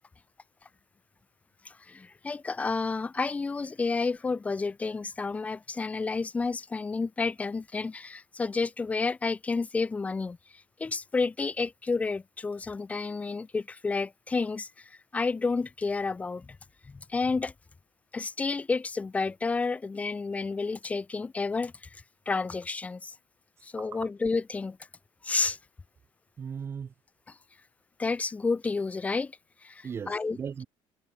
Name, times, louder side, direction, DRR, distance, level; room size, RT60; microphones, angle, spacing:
voice 1, 1.6-10.4 10.8-16.6 16.8-17.5 18.1-23.1 23.6-24.8 25.2-25.6 27.3-27.4 28.0-29.3 29.6-30.4, left 4 dB, 15° left, 1.7 m, -30 dB
voice 2, 23.8-24.1 26.4-26.9 29.8-30.7, right 7 dB, 25° right, 4.8 m, -37 dB
cardioid pair, 175°, 10 cm